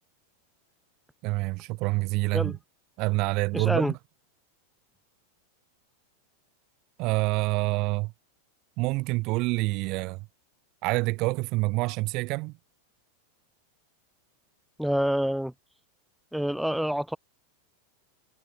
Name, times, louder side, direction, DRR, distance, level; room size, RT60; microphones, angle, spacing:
voice 1, 1.2-2.5 3.0-3.9 7.0-8.1 8.8-10.3 10.8-12.5, right 24 dB, 40° right, 0.7 m, -27 dB
voice 2, 3.5-3.9 14.8-15.5 16.3-17.2, equal, ahead, 0.7 m, -27 dB
figure-of-eight pair, 90°, 0 cm